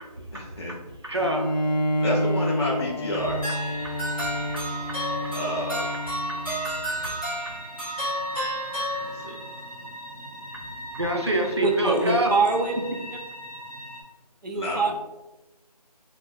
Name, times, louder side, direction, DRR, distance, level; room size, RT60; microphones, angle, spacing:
voice 1, 0.3-0.7 2.0-3.4 5.3-6.0 9.0-9.4 11.4-11.7 14.5-14.9, equal, 40° left, -3 dB, 0.4 m, -30 dB
voice 2, 1.0-1.5 3.8-5.3 10.9-12.3, right 1 dB, 40° right, 1 dB, 0.4 m, -27 dB
Bowed string instrument, 1.2-6.8, equal, 90° left, 0.5 m, -29 dB
sound 1, 3.2-14.0, equal, 55° right, 0.9 m, -40 dB
sound 2, 3.4-9.6, right 1 dB, 15° right, 0.8 m, -31 dB
voice 3, 11.6-12.7 14.4-14.9, right 3 dB, 90° right, 1 dB, 0.6 m, -23 dB
2.3 x 2.3 x 3.2 m, 1.0 s
figure-of-eight pair, 180°, 21 cm